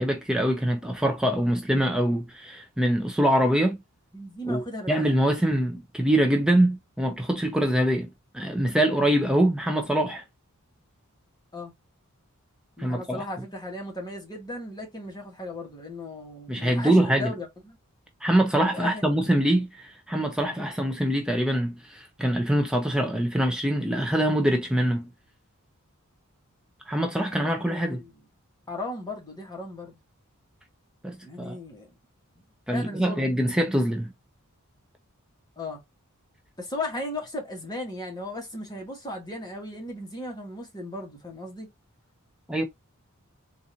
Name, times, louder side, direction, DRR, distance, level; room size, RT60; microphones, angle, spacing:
voice 1, 0.0-3.8 4.4-8.1 8.3-10.2 12.8-13.2 16.5-17.3 18.2-25.1 26.9-28.0 31.0-31.6 32.7-34.1 42.5-42.6, right 1 dB, 5° right, 0.5 m, -24 dB
voice 2, 4.1-5.0 11.5-11.7 12.8-17.8 18.7-19.0 27.3-28.1 28.7-30.0 31.2-31.9 32.7-33.3 35.6-35.8 36.6-41.7, left 1 dB, 20° left, 1.4 m, -36 dB
3.9 x 2.5 x 2.8 m
head